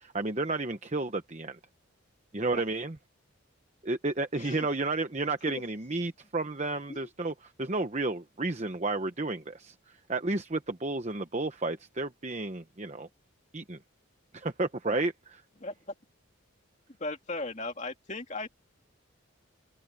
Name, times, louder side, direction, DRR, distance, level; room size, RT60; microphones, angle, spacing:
voice 1, 0.0-1.6 2.3-2.9 3.8-9.7 10.1-13.1 13.5-13.8 14.3-15.4, right 2 dB, 30° right, 0.9 m, -32 dB
voice 2, 17.0-18.5, left 2 dB, 35° left, 2.6 m, -37 dB
open air
head